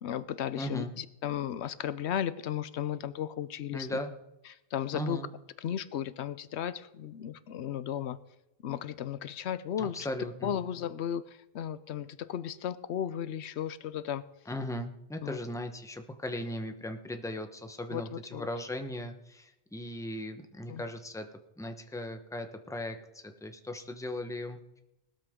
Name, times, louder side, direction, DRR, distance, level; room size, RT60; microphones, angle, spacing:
voice 1, 0.0-3.9 4.7-5.2 5.6-8.2 8.6-10.0 10.4-11.2 11.5-14.2 15.2-15.4 17.9-18.5 20.7-20.8, left 10 dB, 85° left, 15 dB, 0.9 m, -35 dB
voice 2, 0.5-0.9 3.7-4.1 4.9-5.3 9.8-10.6 14.5-21.3 21.6-24.8, left 1 dB, 5° left, 6 dB, 0.9 m, -38 dB
18.5 x 13.0 x 3.7 m, 0.90 s
omnidirectional pair, 1.1 m